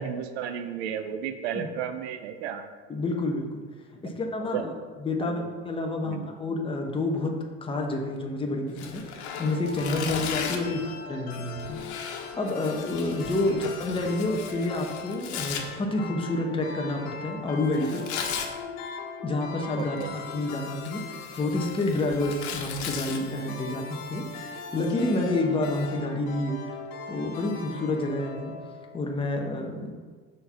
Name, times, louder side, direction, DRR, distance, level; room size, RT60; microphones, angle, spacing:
voice 1, 0.0-2.6 4.5-4.7 5.2-5.4 6.0-6.3 10.6-10.8 13.5-13.6 19.8-20.2, right 8 dB, 90° right, 9 dB, 0.7 m, -33 dB
voice 2, 2.9-3.6 4.0-4.7 5.0-7.3 7.6-10.8 11.1-11.8 12.4-18.0 19.2-26.7 27.1-28.6 28.9-29.9, left 2 dB, 15° left, 1 dB, 1.0 m, -29 dB
Tearing, 8.7-10.8 11.6-15.6 17.7-18.5 19.8-20.3 20.7-23.2, left 7 dB, 90° left, 1.2 m, -37 dB
sound 1, 9.2-29.1, left 5 dB, 70° left, 1.4 m, -40 dB
6.4 x 4.6 x 5.7 m, 1.5 s
supercardioid pair, 125°, 32 cm